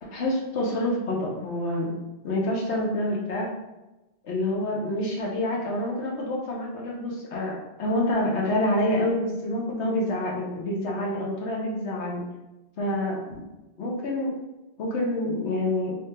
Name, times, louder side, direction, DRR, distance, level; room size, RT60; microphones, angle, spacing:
voice 1, 0.0-2.0 2.2-3.5 4.2-12.2 12.8-13.4 13.8-14.3 14.8-16.0, left 1 dB, 85° left, -2 dB, 1.2 m, -27 dB
3.4 x 2.9 x 3.2 m, 1.0 s
omnidirectional pair, 1.1 m